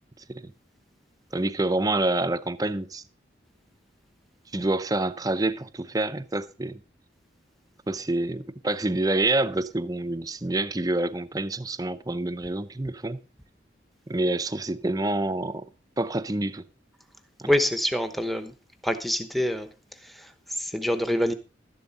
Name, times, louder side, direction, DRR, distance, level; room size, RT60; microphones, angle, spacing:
voice 1, 1.3-3.0 4.5-6.8 7.9-13.2 14.1-15.7 16.0-16.6 17.4-17.5, right 2 dB, 20° right, 0.6 m, -27 dB
voice 2, 17.5-18.5 18.8-19.7 20.0-21.3, equal, ahead, 1.0 m, -26 dB
12.5 x 11.0 x 4.1 m
head